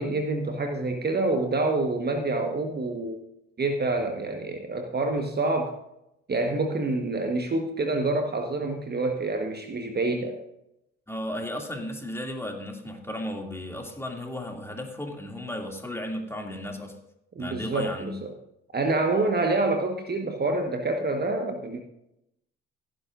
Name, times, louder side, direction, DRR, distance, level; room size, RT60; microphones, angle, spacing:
voice 1, 0.0-3.2 3.6-5.8 6.3-10.4 17.3-18.3 18.7-21.8, right 2 dB, 30° right, 4 dB, 1.4 m, -27 dB
voice 2, 11.1-17.0 17.4-18.1, left 1 dB, 10° left, 1 dB, 2.6 m, -34 dB
16.5 x 10.5 x 2.6 m, 0.83 s
hypercardioid pair, 55°, 32 cm